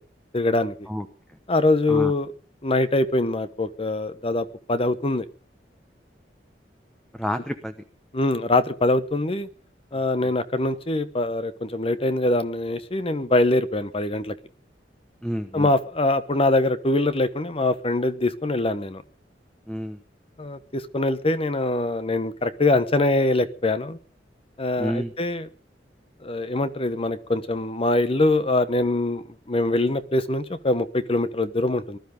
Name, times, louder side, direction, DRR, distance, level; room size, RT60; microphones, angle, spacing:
voice 1, 0.3-0.7 1.5-2.3 2.6-5.2 8.1-9.5 9.9-14.3 15.5-19.0 20.4-24.0 24.6-25.5 26.2-32.0, left 2 dB, 35° left, 13 dB, 1.0 m, -23 dB
voice 2, 7.1-7.7 10.2-10.3 15.2-15.7 19.7-20.0 24.8-25.1, equal, 5° left, 8 dB, 1.0 m, -29 dB
19.5 x 12.0 x 5.2 m, 0.39 s
head